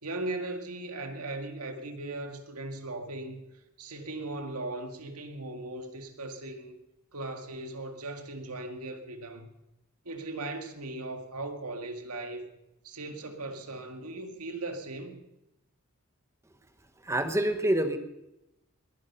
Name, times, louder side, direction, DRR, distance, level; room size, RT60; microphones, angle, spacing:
voice 1, 0.0-3.4 3.8-6.8 7.1-9.5 10.0-12.5 12.8-15.2, right 2 dB, 90° right, 5 dB, 2.1 m, -38 dB
voice 2, 17.1-18.0, right 1 dB, 15° right, 8 dB, 1.0 m, -26 dB
21.5 x 11.0 x 5.6 m, 0.91 s
head